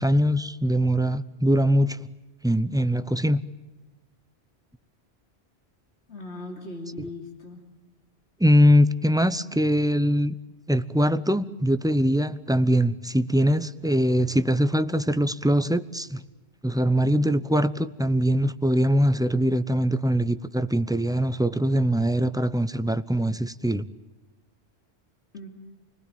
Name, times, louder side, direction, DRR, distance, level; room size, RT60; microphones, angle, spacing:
voice 1, 0.0-2.1 2.4-3.4 8.4-10.4 10.7-16.2 16.6-23.9, equal, 5° right, 0.7 m, -22 dB
voice 2, 6.1-7.6 25.3-25.5, left 2 dB, 85° left, 3.3 m, -38 dB
29.0 x 20.0 x 9.2 m
omnidirectional pair, 1.1 m